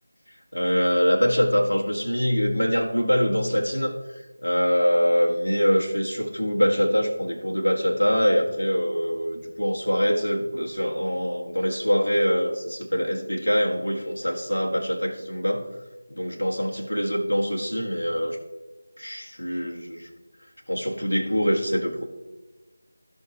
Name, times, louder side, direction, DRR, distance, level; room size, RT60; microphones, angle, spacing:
voice 1, 0.5-3.9 4.4-15.6 16.1-18.4 19.0-20.1 20.7-22.0, equal, 75° left, 0 dB, 1.9 m, -24 dB
16.0 x 6.1 x 3.0 m, 1.2 s
figure-of-eight pair, 165°, 0 cm